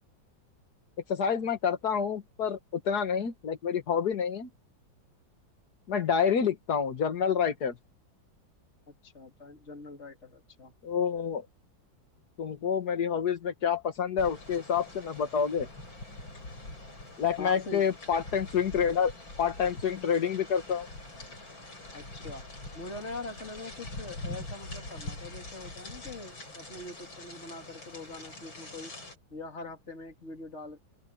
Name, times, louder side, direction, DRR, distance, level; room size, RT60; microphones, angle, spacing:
voice 1, 1.1-4.5 5.9-7.8 10.8-11.4 12.4-15.7 17.2-19.1 19.4-20.9, left 7 dB, 55° left, 2.0 m, -28 dB
voice 2, 8.9-10.7 17.4-17.9 21.9-22.4 22.7-28.9 29.3-30.8, left 2 dB, 35° left, 3.0 m, -43 dB
sound 1, 14.2-29.2, left 2 dB, 80° left, 8.8 m, -44 dB
open air
omnidirectional pair, 2.1 m